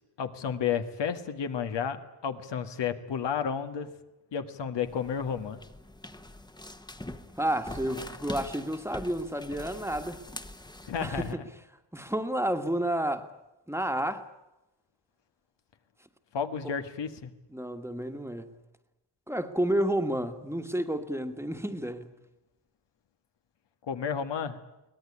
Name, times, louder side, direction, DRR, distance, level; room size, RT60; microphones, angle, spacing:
voice 1, 0.2-3.9 4.3-5.6 10.9-11.4 16.3-17.3 23.9-24.6, left 7 dB, 85° left, 7 dB, 1.8 m, -32 dB
sound 1, 4.9-11.3, left 1 dB, 10° left, 1.1 m, -43 dB
voice 2, 7.4-10.2 11.0-11.3 11.9-13.2 13.7-14.2 16.6-16.7 17.5-18.5 19.3-22.1, right 1 dB, 5° right, 7 dB, 1.5 m, -30 dB
23.0 x 18.5 x 9.9 m, 0.95 s
wide cardioid pair, 125°, 41 cm